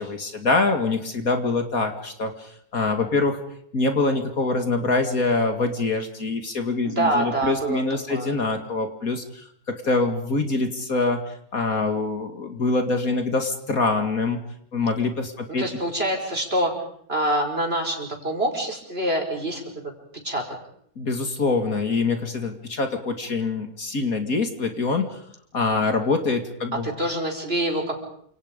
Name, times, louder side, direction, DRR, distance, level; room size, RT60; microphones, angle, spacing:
voice 1, 0.0-3.4 3.7-11.2 11.5-14.4 14.7-15.6 21.0-25.2 25.5-26.9, left 3 dB, 55° left, 6 dB, 2.6 m, -24 dB
voice 2, 6.8-7.8 8.1-8.3 15.5-16.7 17.1-19.9 20.2-20.4 26.8-28.0, right 1 dB, 35° right, 2 dB, 5.4 m, -25 dB
29.0 x 27.0 x 5.3 m, 0.66 s
omnidirectional pair, 1.8 m